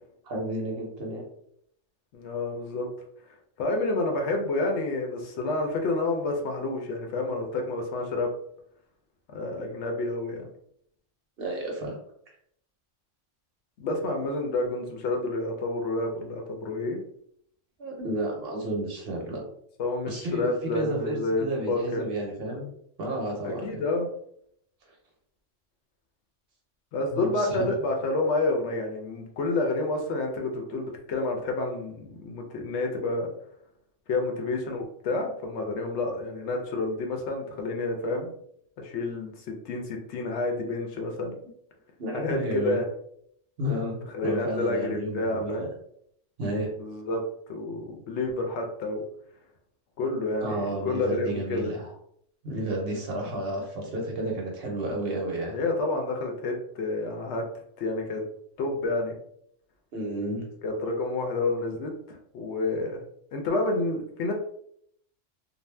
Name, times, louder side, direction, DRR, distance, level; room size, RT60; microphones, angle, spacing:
voice 1, 0.2-1.2 11.4-12.0 17.8-19.4 20.1-20.5 20.7-22.7 23.0-23.6 27.1-27.7 42.0-42.8 43.6-45.7 46.4-46.7 50.4-51.9 52.4-55.6 59.9-60.5, right 1 dB, 60° right, 0 dB, 0.9 m, -31 dB
voice 2, 2.1-2.9 3.6-8.3 9.3-10.5 13.8-17.0 19.8-22.1 23.4-24.1 26.9-33.3 34.1-38.3 38.8-41.3 42.1-42.8 44.1-45.7 46.8-47.2 47.5-49.0 50.0-51.7 55.5-57.4 57.8-58.2 58.6-59.2 60.6-63.0 63.3-64.3, left 2 dB, 70° left, 2 dB, 0.8 m, -29 dB
2.6 x 2.1 x 3.2 m, 0.68 s
omnidirectional pair, 1.3 m